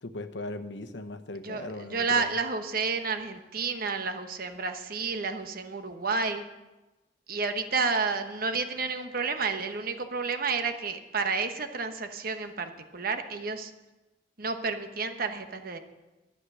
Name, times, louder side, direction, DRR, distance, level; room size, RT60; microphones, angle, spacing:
voice 1, 0.0-2.4, left 2 dB, 90° left, 9 dB, 0.9 m, -38 dB
voice 2, 1.9-6.4 7.3-13.7 14.4-15.8, right 4 dB, 55° right, 7 dB, 1.1 m, -30 dB
11.5 x 10.0 x 6.3 m, 1.1 s
head